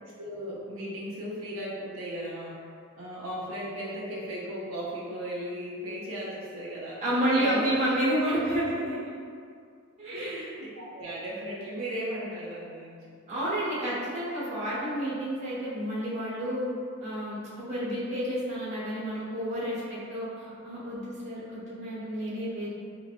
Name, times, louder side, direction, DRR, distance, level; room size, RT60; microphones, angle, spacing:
voice 1, 0.2-2.7 3.0-7.0 7.4-7.8 8.3-8.5 10.1-13.0, equal, 85° right, -6 dB, 0.5 m, -36 dB
voice 2, 7.0-9.0 10.0-10.4 13.3-16.7 17.0-17.4 17.7-22.7, right 1 dB, 35° right, -10 dB, 0.9 m, -30 dB
3.9 x 2.0 x 2.5 m, 2.3 s
head